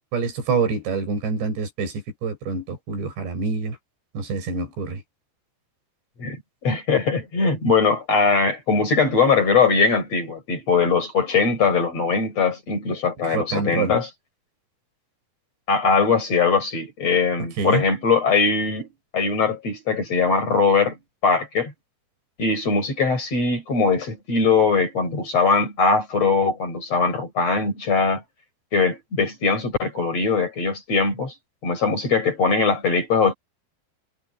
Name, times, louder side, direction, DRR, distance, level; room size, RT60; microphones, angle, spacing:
voice 1, 0.1-3.8 4.1-5.0 13.3-13.9 17.4-17.8, right 4 dB, 80° right, 6.8 m, -26 dB
voice 2, 6.2-14.1 15.7-18.9 19.1-21.0 21.2-21.7 22.4-28.2 28.7-31.3 31.6-33.3, left 4 dB, 40° left, 5.7 m, -21 dB
omnidirectional pair, 4.9 m